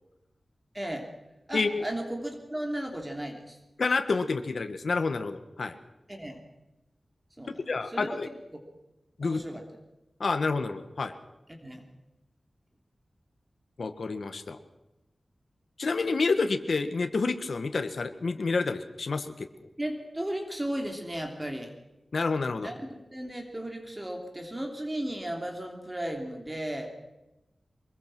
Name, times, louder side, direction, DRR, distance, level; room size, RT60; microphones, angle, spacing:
voice 1, 0.7-1.1 1.5-3.6 6.1-6.4 7.4-7.6 7.9-8.2 9.2-9.6 11.6-11.9 19.8-21.7 22.6-26.9, right 1 dB, 20° right, 3 dB, 3.1 m, -35 dB
voice 2, 1.5-1.8 3.8-5.7 7.7-8.3 9.2-9.4 10.2-11.1 13.8-14.6 15.8-19.5 22.1-22.7, left 4 dB, 75° left, 8 dB, 1.5 m, -28 dB
24.0 x 22.0 x 6.2 m, 0.97 s
wide cardioid pair, 85°, 0 cm